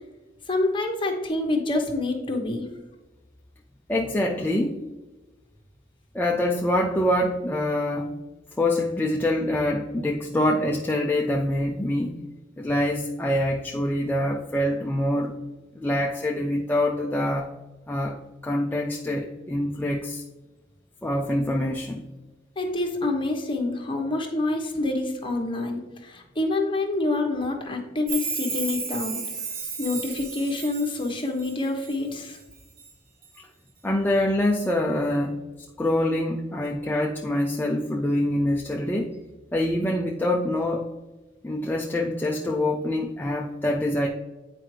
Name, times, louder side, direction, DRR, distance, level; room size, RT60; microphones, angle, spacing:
voice 1, 0.5-2.7 22.6-29.2 29.8-32.4, left 2 dB, 25° left, 2 dB, 1.1 m, -27 dB
voice 2, 3.9-4.8 6.1-8.1 8.6-12.2 12.6-15.3 15.7-17.5 17.9-18.2 18.4-20.2 21.0-22.1 33.4-33.5 33.8-35.4 35.8-39.2 39.5-40.9 41.4-44.1, left 1 dB, 10° left, 0 dB, 0.4 m, -25 dB
Chime, 28.1-32.0 32.3-32.9 33.2-33.3, right 5 dB, 55° right, 1.2 m, -33 dB
9.1 x 4.5 x 3.2 m, 1.1 s
head